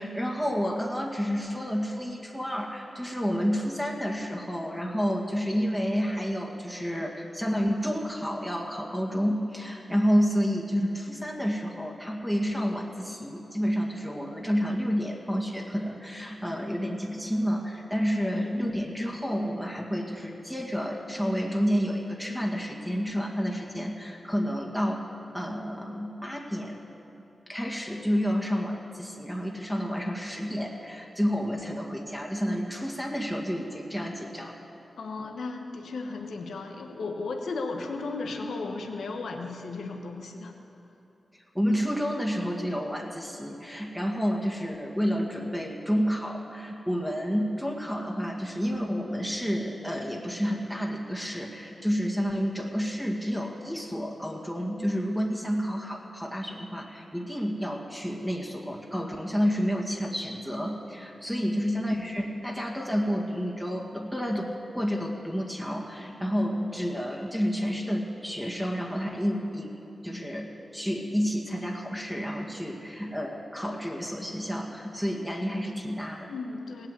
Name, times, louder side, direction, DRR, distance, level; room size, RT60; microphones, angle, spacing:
voice 1, 0.0-25.0 25.3-26.8 27.5-34.5 35.2-35.3 41.5-69.7 70.0-76.3, equal, ahead, -1 dB, 2.0 m, -30 dB
voice 2, 35.0-40.5 61.5-61.7 76.3-76.9, left 3 dB, 85° left, 3 dB, 1.1 m, -35 dB
17.5 x 8.8 x 8.1 m, 2.9 s
cardioid pair, 45°, 0 cm